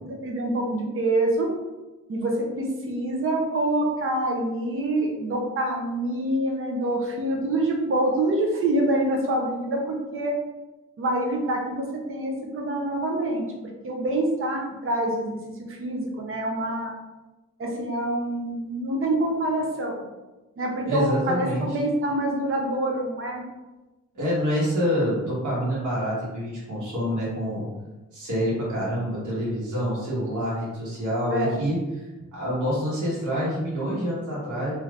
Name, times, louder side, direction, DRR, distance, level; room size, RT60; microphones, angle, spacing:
voice 1, 0.0-1.5 2.1-10.4 11.0-13.4 13.8-15.4 15.7-16.9 17.6-20.0 20.6-23.4 31.3-31.5, right 1 dB, 45° right, 0 dB, 0.7 m, -26 dB
voice 2, 20.8-21.7 24.1-27.7 28.1-32.1 32.3-34.7, equal, 80° right, -7 dB, 1.5 m, -27 dB
3.3 x 2.7 x 2.4 m, 1.1 s
cardioid pair, 115°, 30 cm